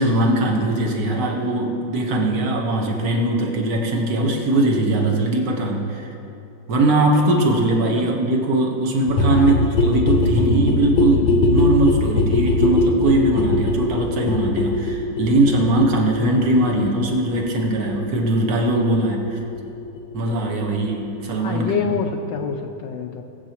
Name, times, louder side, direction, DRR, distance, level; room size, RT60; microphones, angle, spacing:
voice 1, 0.0-6.1 6.7-19.4 20.1-22.0, right 1 dB, 50° right, 0 dB, 1.7 m, -20 dB
sound 1, 9.1-20.6 20.9-21.0 21.2-21.3 21.5-21.6 21.8-21.9 22.1-22.2 22.4-22.5, left 2 dB, 90° left, 1.8 m, -21 dB
voice 2, 9.3-9.6 21.4-23.2, left 7 dB, 75° left, 4 dB, 1.2 m, -27 dB
21.0 x 8.2 x 3.0 m, 2.8 s
omnidirectional pair, 2.1 m